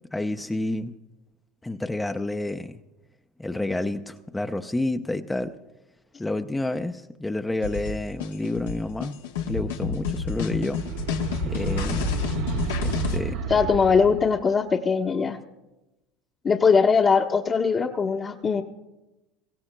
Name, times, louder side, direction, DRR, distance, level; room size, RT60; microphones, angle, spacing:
voice 1, 0.1-1.0 1.6-2.7 3.4-5.5 6.2-9.2 9.5-10.8 11.5-12.2 12.8-13.4, left 2 dB, 10° left, 7 dB, 0.6 m, -29 dB
sound 1, 7.6-13.2, left 5 dB, 90° left, 1.2 m, -29 dB
sound 2, 10.5-14.4, right 6 dB, 80° right, 2.3 m, -31 dB
voice 2, 13.5-15.4 16.4-18.6, left 5 dB, 30° left, -1 dB, 0.9 m, -21 dB
22.5 x 16.0 x 2.2 m, 1.0 s
supercardioid pair, 95°, 0 cm